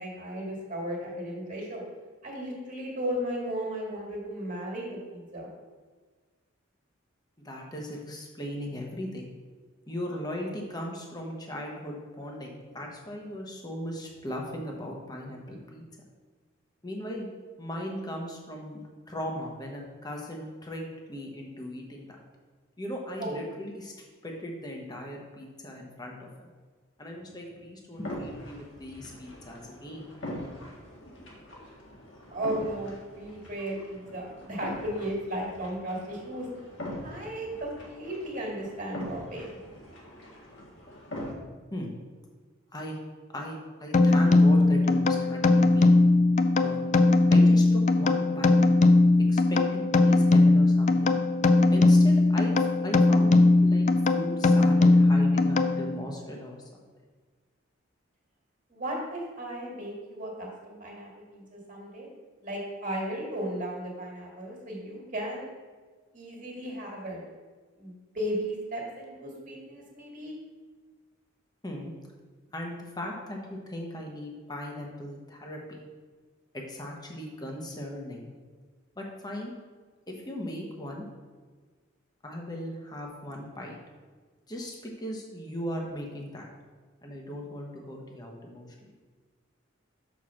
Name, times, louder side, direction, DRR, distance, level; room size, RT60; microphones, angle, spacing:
voice 1, 0.0-1.8 2.2-5.5 23.2-23.4 32.3-36.5 37.0-39.6 58.7-62.1 62.4-65.5 66.1-67.2 67.8-70.3, right 1 dB, 40° right, -2 dB, 2.0 m, -35 dB
voice 2, 7.4-9.3 9.9-15.8 16.8-17.3 17.6-22.1 22.8-26.5 27.0-30.1 41.7-41.9 42.7-43.0 43.3-46.0 46.6-46.8 47.3-48.6 49.3-51.2 51.7-56.8 71.6-71.9 72.5-75.6 76.5-78.3 79.0-79.5 80.1-81.1 82.2-83.8 84.5-86.5 87.0-88.7, equal, 20° left, 0 dB, 1.0 m, -38 dB
sound 1, 28.0-41.3, left 1 dB, 60° left, 1.6 m, -42 dB
sound 2, 43.9-56.1, left 2 dB, 35° left, 0.3 m, -20 dB
6.1 x 4.5 x 6.3 m, 1.4 s
head